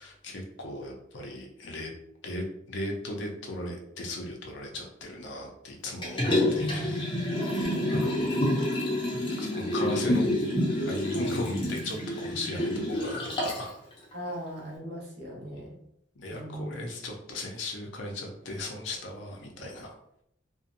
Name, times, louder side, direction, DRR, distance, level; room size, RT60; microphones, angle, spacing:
voice 1, 0.0-1.9 2.2-6.2 6.5-6.9 7.5-8.4 9.4-10.3 10.9-13.7 15.6-15.7 16.2-20.0, left 1 dB, 75° left, 1 dB, 0.6 m, -37 dB
Liquid, 6.0-13.7 14.1-14.2, left 1 dB, 25° left, 0.6 m, -28 dB
voice 2, 6.2-6.8 7.6-7.9 11.1-11.4 14.1-15.8 16.3-16.7, right 1 dB, 60° right, -4 dB, 1.0 m, -39 dB
2.7 x 2.1 x 2.5 m, 0.75 s
head